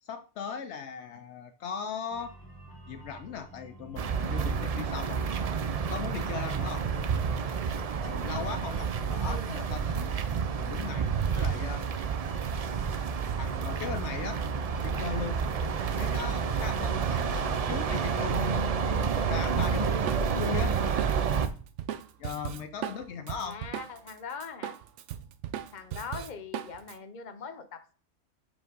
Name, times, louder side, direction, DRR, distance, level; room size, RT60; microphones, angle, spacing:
voice 1, 0.0-2.3 2.9-5.3 5.9-6.8 8.0-10.1 10.6-11.9 13.4-14.4 14.8-15.4 16.0-20.8 22.2-23.6, left 6 dB, 75° left, 9 dB, 0.8 m, -38 dB
sound 1, 2.1-17.1, right 2 dB, 20° left, 1.4 m, -49 dB
sound 2, 4.0-21.5, right 6 dB, 50° right, 0.4 m, -29 dB
Drum kit, 19.6-24.1 24.4-26.9, right 10 dB, 90° right, 0.9 m, -38 dB
voice 2, 23.4-24.8 25.7-27.9, left 6 dB, 45° left, 8 dB, 0.9 m, -41 dB
5.0 x 3.6 x 5.3 m, 0.40 s
omnidirectional pair, 1.2 m